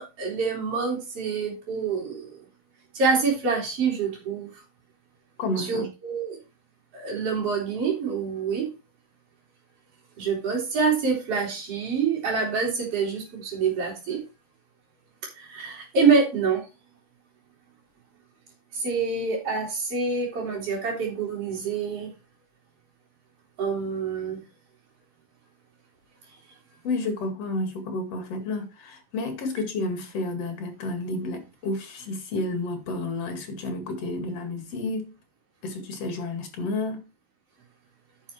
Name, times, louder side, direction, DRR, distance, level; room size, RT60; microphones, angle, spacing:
voice 1, 0.0-2.4 2.9-4.5 5.6-6.4 6.9-8.7 10.2-14.2 15.4-16.6 18.7-22.1 23.6-24.4, right 5 dB, 40° right, -5 dB, 3.8 m, -26 dB
voice 2, 5.4-5.9 26.8-35.1 35.6-37.0, left 2 dB, 50° left, 6 dB, 2.9 m, -31 dB
9.8 x 6.7 x 4.3 m, 0.28 s
omnidirectional pair, 4.1 m